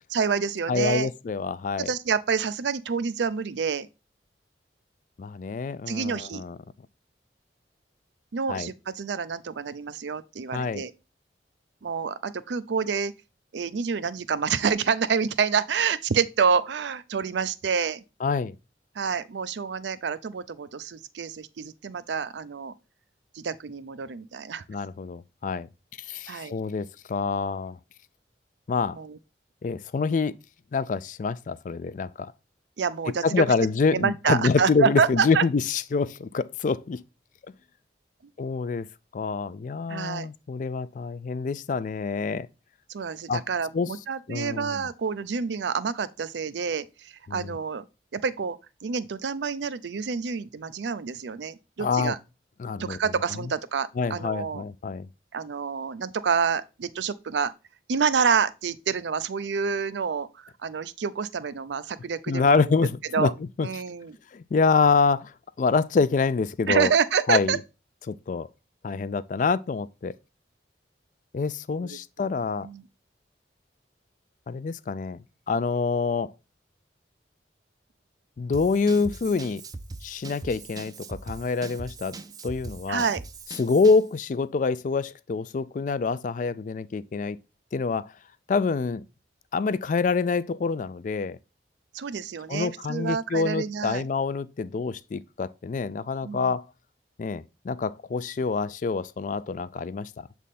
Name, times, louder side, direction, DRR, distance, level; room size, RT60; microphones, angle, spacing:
voice 1, 0.1-1.1 1.8-3.9 5.9-6.4 8.3-10.9 11.8-13.1 13.5-18.0 19.0-22.7 23.3-24.6 26.3-26.5 28.9-29.2 32.8-33.2 33.9-35.4 39.9-40.3 42.9-47.8 48.1-52.2 52.8-54.6 55.3-57.5 57.9-62.6 63.1-63.3 63.6-64.2 66.7-67.6 71.8-72.0 72.6-72.8 82.9-83.2 91.9-94.0 96.2-96.5, right 6 dB, 85° right, 0.5 m, -28 dB
voice 2, 0.7-1.9 5.2-6.6 8.5-8.7 10.5-10.8 18.2-18.5 24.7-25.7 26.1-27.8 28.7-29.0 29.6-30.3 30.7-32.3 33.2-37.0 38.4-38.9 39.1-42.5 43.3-43.4 43.7-43.9 44.3-44.8 47.3-47.6 51.8-52.1 52.6-53.0 54.0-55.1 62.3-63.3 63.6-63.7 64.3-65.3 65.6-66.9 67.3-67.6 68.1-68.5 68.8-70.1 71.3-72.7 74.5-75.2 75.5-76.3 78.4-79.6 80.0-82.1 82.4-83.1 83.6-87.4 87.7-88.1 88.5-89.0 89.5-91.4 92.5-96.6 97.2-100.3, left 4 dB, 45° left, 0.3 m, -26 dB
Drum kit / Drum, 78.5-84.1, right 3 dB, 20° right, 0.4 m, -41 dB
7.4 x 3.5 x 4.1 m
head